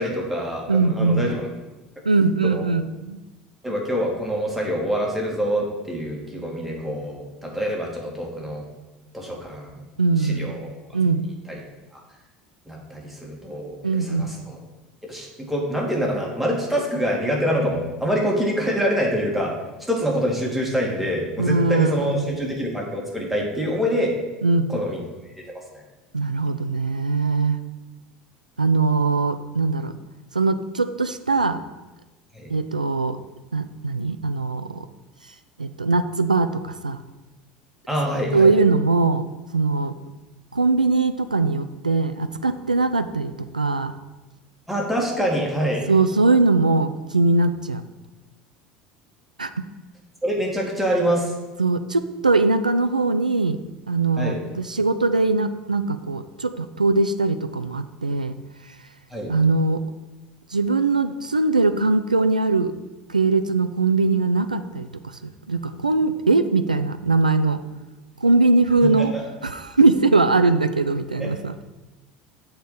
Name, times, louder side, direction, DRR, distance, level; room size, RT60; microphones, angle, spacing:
voice 1, 0.0-1.5 2.4-2.6 3.6-8.6 9.1-9.8 10.2-10.7 11.5-11.6 11.9-12.0 12.7-14.6 15.0-19.5 19.9-24.1 24.7-25.0 25.5-25.8 32.3-32.5 37.9-38.5 44.7-45.8 50.2-51.3 54.2-54.4 59.1-59.3 68.8-69.2 71.2-71.3, equal, ahead, -3 dB, 2.4 m, -25 dB
voice 2, 0.7-1.3 2.0-3.2 10.0-10.6 10.9-11.4 13.8-14.3 21.4-22.3 24.4-24.7 26.1-27.6 28.6-29.9 30.3-31.6 32.5-33.2 33.5-34.9 35.6-37.0 38.3-39.9 40.5-43.9 45.9-47.8 49.4-49.6 51.6-53.6 53.9-58.3 59.3-59.8 60.5-62.7 63.1-65.2 65.5-67.6 68.2-69.1 69.4-71.5, right 3 dB, 90° right, 10 dB, 0.3 m, -21 dB
7.1 x 5.1 x 6.0 m, 1.1 s
figure-of-eight pair, 70°, 4 cm